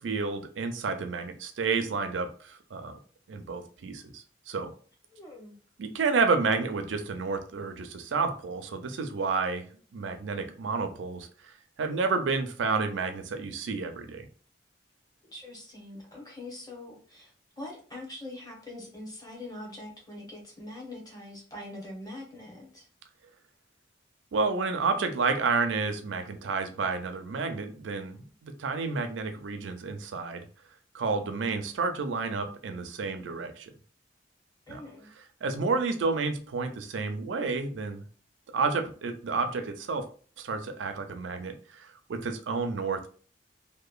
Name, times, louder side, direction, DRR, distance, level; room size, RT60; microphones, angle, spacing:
voice 1, 0.0-3.0 3.3-4.7 5.8-9.7 9.9-11.5 11.8-14.3 24.3-30.5 30.9-33.7 34.7-34.8 35.4-38.0 38.5-40.0 40.4-43.1, right 4 dB, 90° right, 7 dB, 0.4 m, -30 dB
voice 2, 5.1-5.5 15.3-22.9 34.7-35.1, left 1 dB, 20° left, -1 dB, 0.8 m, -43 dB
2.9 x 2.1 x 2.3 m, 0.42 s
head